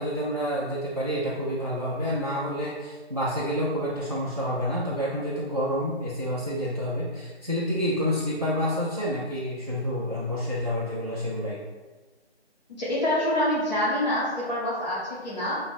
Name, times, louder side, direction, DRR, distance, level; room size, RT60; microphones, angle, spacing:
voice 1, 0.0-11.6, equal, 35° right, -5 dB, 0.4 m, -28 dB
voice 2, 12.8-15.5, left 1 dB, 40° left, -8 dB, 1.0 m, -26 dB
5.8 x 3.0 x 2.3 m, 1.3 s
figure-of-eight pair, 165°, 34 cm